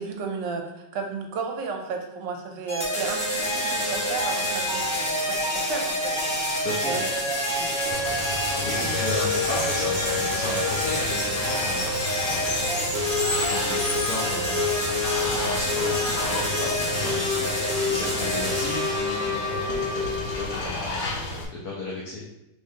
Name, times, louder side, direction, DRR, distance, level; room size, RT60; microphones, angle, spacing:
voice 1, 0.0-6.5 6.9-7.3 7.6-8.1 8.8-9.0, right 4 dB, 75° right, 3 dB, 1.2 m, -34 dB
sound 1, 2.7-20.6, left 1 dB, 20° left, 0.8 m, -27 dB
voice 2, 6.5-7.1 8.6-13.2 13.5-22.2, left 2 dB, 65° left, -4 dB, 1.0 m, -35 dB
Water, 7.9-21.5, left 3 dB, 85° left, 1.4 m, -32 dB
3.6 x 3.2 x 2.7 m, 0.91 s
omnidirectional pair, 2.1 m